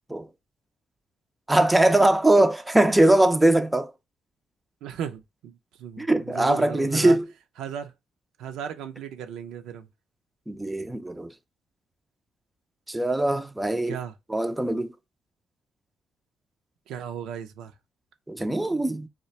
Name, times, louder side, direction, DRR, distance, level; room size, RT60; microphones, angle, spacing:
voice 1, 1.5-3.9 6.0-7.2 10.5-11.3 12.9-14.0 14.3-14.9 18.3-19.1, right 1 dB, 10° right, 0.4 m, -21 dB
voice 2, 4.8-7.2 7.6-7.9 8.4-9.9 13.9-14.1 16.9-17.7, right 8 dB, 90° right, 0.4 m, -35 dB
2.4 x 2.2 x 3.9 m
cardioid pair, 90°, 0 cm